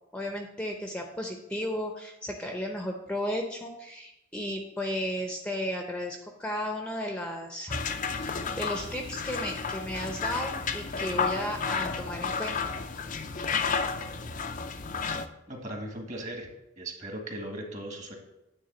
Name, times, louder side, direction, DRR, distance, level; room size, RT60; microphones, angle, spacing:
voice 1, 0.1-7.8 8.2-12.5, equal, 5° left, 2 dB, 0.7 m, -34 dB
sound 1, 7.7-15.3, left 5 dB, 40° left, 0.5 m, -32 dB
voice 2, 15.5-16.5 16.8-18.1, right 1 dB, 35° right, 2 dB, 1.6 m, -38 dB
9.6 x 3.6 x 7.0 m, 0.88 s
head